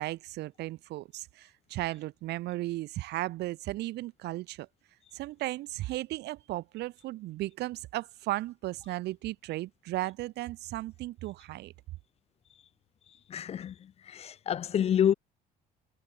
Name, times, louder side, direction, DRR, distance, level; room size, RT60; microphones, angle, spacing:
voice 1, 0.0-4.7 5.1-11.7, right 17 dB, 80° right, 2.8 m, -35 dB
voice 2, 13.3-15.1, left 9 dB, 40° left, 0.4 m, -28 dB
cardioid pair, 110°, 17 cm